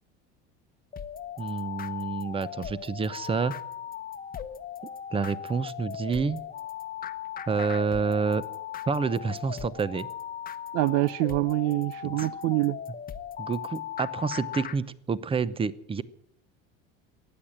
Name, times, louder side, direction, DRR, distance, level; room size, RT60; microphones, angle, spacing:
sound 1, 0.9-14.8, left 9 dB, 30° left, 1.0 m, -38 dB
voice 1, 1.4-3.5 5.1-6.4 7.5-8.4 8.9-10.1 12.0-12.3 13.4-16.0, right 5 dB, 20° right, 0.8 m, -28 dB
voice 2, 10.7-12.8, right 19 dB, 60° right, 0.5 m, -25 dB
15.5 x 9.9 x 8.7 m
supercardioid pair, 105°, 29 cm